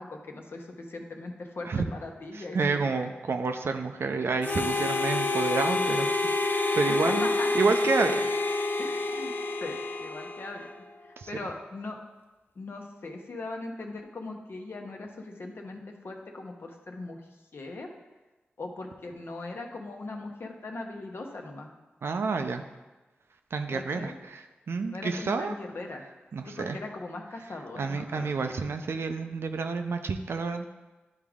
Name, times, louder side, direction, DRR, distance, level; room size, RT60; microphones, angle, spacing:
voice 1, 0.0-3.1 6.9-7.5 8.8-9.3 9.6-10.7 11.3-12.0 12.6-17.2 17.5-17.9 18.6-21.7 23.7-24.1 24.9-26.0 26.4-28.3, left 2 dB, 65° left, 2 dB, 1.0 m, -39 dB
voice 2, 2.5-6.1 6.4-7.3 7.5-8.3 11.2-11.3 22.0-22.6 23.5-25.5 26.3-26.8 27.8-30.7, right 4 dB, 75° right, 6 dB, 0.5 m, -29 dB
Harmonica, 4.4-10.8, left 2 dB, 50° left, 0.5 m, -28 dB
10.5 x 3.6 x 3.6 m, 1.2 s
cardioid pair, 40°, 4 cm